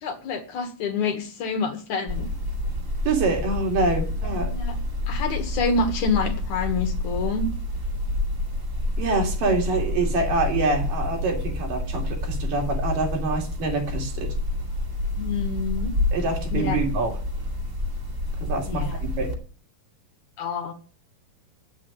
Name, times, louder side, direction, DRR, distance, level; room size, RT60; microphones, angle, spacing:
voice 1, 0.0-2.3 4.2-4.7 5.1-7.5 15.2-15.9 16.5-16.8 18.7-19.0 20.4-20.7, left 4 dB, 60° left, 4 dB, 2.7 m, -27 dB
sound 1, 2.1-19.4, left 2 dB, 25° right, 2.1 m, -28 dB
voice 2, 3.1-4.5 9.0-14.3 16.1-17.2 18.4-19.3, right 3 dB, 65° right, 2 dB, 4.3 m, -26 dB
9.0 x 8.6 x 8.7 m, 0.39 s
omnidirectional pair, 4.1 m